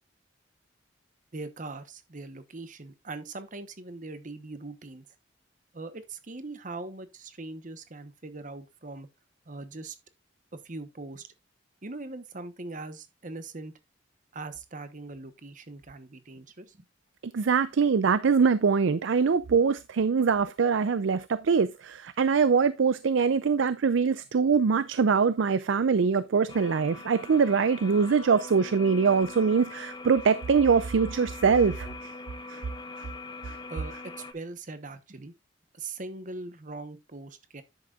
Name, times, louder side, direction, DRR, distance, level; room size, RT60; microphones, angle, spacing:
voice 1, 1.3-5.0 5.7-9.1 9.5-10.0 10.6-11.3 11.8-13.7 14.3-16.8 33.7-35.3 35.7-37.6, right 3 dB, 45° right, 1.0 m, -41 dB
voice 2, 17.2-32.1 32.5-32.6 33.0-33.1 33.4-33.6, right 5 dB, 80° right, 0.5 m, -23 dB
sound 1, 26.5-34.3, left 3 dB, 25° left, 1.0 m, -42 dB
10.5 x 7.8 x 2.4 m
head